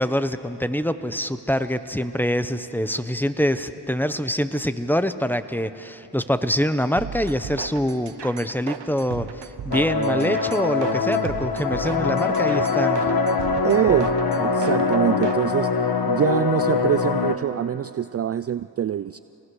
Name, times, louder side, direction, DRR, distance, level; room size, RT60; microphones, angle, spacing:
voice 1, 0.0-13.1, equal, 5° left, 11 dB, 1.0 m, -25 dB
sound 1, 7.0-15.5, right 8 dB, 65° right, 1.2 m, -36 dB
sound 2, 9.7-17.4, left 4 dB, 50° left, 1.6 m, -23 dB
voice 2, 13.5-15.7 16.1-19.2, right 9 dB, 35° right, 15 dB, 0.4 m, -24 dB
27.0 x 19.5 x 6.4 m, 2.9 s
cardioid pair, 60°, 45 cm